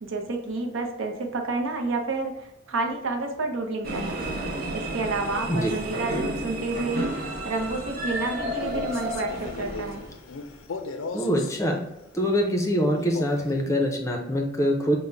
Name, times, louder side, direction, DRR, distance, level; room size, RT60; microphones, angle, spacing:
voice 1, 0.0-4.2 4.7-10.0, right 3 dB, 80° right, 3 dB, 0.7 m, -30 dB
sound 1, 3.8-10.2, right 1 dB, 45° right, 0.8 m, -32 dB
Male speech man speaking, 8.5-11.6 13.0-13.6, left 3 dB, 80° left, 0.4 m, -37 dB
voice 2, 11.1-11.8 12.1-15.0, equal, 15° left, 2 dB, 0.5 m, -24 dB
5.3 x 2.1 x 3.4 m, 0.91 s
head